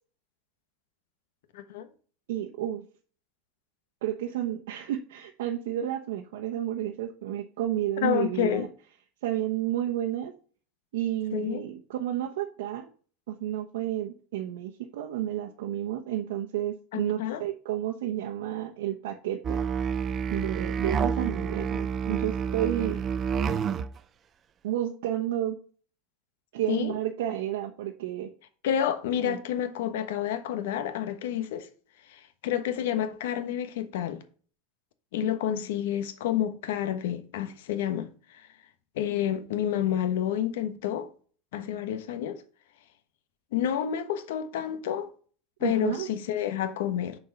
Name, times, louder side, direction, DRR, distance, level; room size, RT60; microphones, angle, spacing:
voice 1, 1.5-1.9 8.0-8.7 11.3-11.6 16.9-17.4 26.7-26.9 28.6-31.7 32.1-34.2 35.1-38.1 39.0-41.1 41.5-42.4 43.5-45.1 45.6-47.2, left 10 dB, 75° left, 1.1 m, -29 dB
voice 2, 2.3-2.8 4.0-8.7 9.2-10.3 10.9-12.9 13.3-19.6 20.3-23.1 24.6-25.6 26.5-28.3 29.2-29.4 35.2-35.3 45.6-46.1, right 12 dB, 80° right, 0.9 m, -31 dB
Musical instrument, 19.4-23.9, right 6 dB, 20° right, 0.4 m, -29 dB
6.9 x 4.6 x 5.8 m
supercardioid pair, 175°, 0 cm